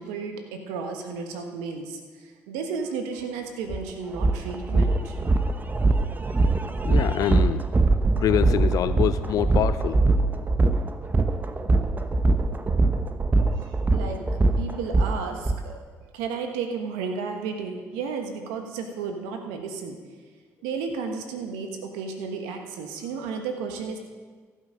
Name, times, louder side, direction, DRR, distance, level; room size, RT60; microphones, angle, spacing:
voice 1, 0.0-5.2 13.6-14.2 14.6-15.8 16.1-20.0 20.6-24.0, right 5 dB, 90° right, 5 dB, 1.3 m, -33 dB
sound 1, 3.7-3.8 4.2-15.6, right 2 dB, 25° right, 0.9 m, -22 dB
voice 2, 6.8-7.6 8.2-10.0, left 11 dB, 65° left, 14 dB, 0.5 m, -25 dB
15.0 x 8.1 x 5.1 m, 1.5 s
supercardioid pair, 60°, 7 cm